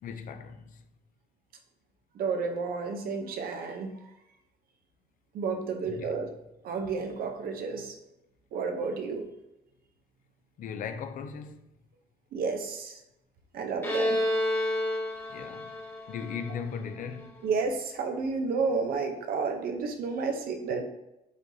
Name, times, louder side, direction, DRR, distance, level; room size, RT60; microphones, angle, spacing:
voice 1, 0.0-0.8 5.8-6.3 10.6-11.6 15.3-15.7 16.1-17.4, left 6 dB, 55° left, 0.5 m, -38 dB
voice 2, 2.1-3.9 5.3-6.3 6.6-8.0 8.5-9.3 12.3-13.0 13.5-14.2 17.4-20.8, right 4 dB, 60° right, 0.7 m, -31 dB
Bowed string instrument, 13.8-17.4, left 1 dB, 15° left, 1.2 m, -30 dB
5.1 x 3.9 x 2.7 m
cardioid pair, 110°, 17 cm